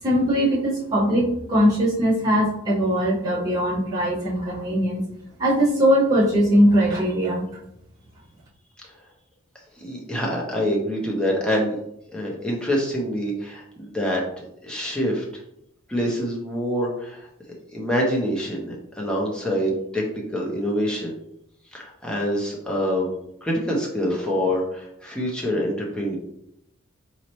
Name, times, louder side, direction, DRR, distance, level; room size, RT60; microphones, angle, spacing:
voice 1, 0.0-5.1 5.4-7.5, equal, 15° right, -9 dB, 1.2 m, -20 dB
voice 2, 9.8-11.8 12.1-14.2 14.6-15.2 15.9-17.3 17.7-20.0 20.3-21.1 21.7-23.1 23.4-26.2, equal, 5° left, -3 dB, 0.6 m, -25 dB
4.1 x 3.0 x 3.0 m, 0.79 s
head